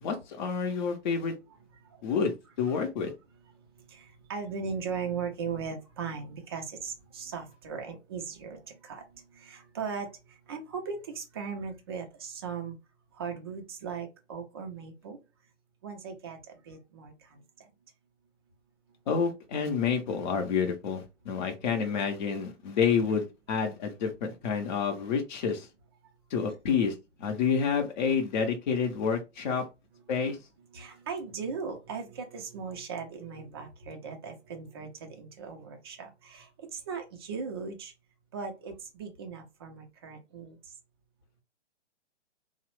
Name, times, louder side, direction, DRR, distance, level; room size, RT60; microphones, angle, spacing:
voice 1, 0.0-1.3 2.0-3.1 19.1-25.7 26.3-26.9 27.2-29.6 30.1-30.4, left 6 dB, 40° left, 0.7 m, -29 dB
voice 2, 3.9-9.0 9.4-10.1 10.5-12.7 13.2-15.2 15.8-17.1 30.7-36.5 36.7-37.9 38.3-40.6, right 5 dB, 20° right, 0.4 m, -38 dB
2.8 x 2.0 x 3.1 m
figure-of-eight pair, 130°, 36 cm